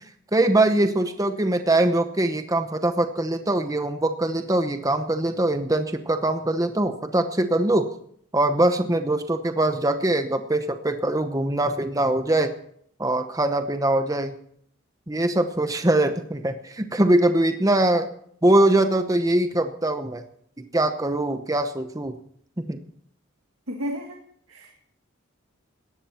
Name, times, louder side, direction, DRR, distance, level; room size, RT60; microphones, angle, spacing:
voice 1, 0.3-7.9 8.3-12.5 13.0-14.3 15.1-18.1 18.4-20.2 20.7-22.1 22.6-22.8, right 1 dB, 15° right, 8 dB, 0.9 m, -22 dB
voice 2, 23.7-24.2 24.5-24.8, equal, 80° right, 3 dB, 1.9 m, -32 dB
17.5 x 13.5 x 4.4 m, 0.66 s
head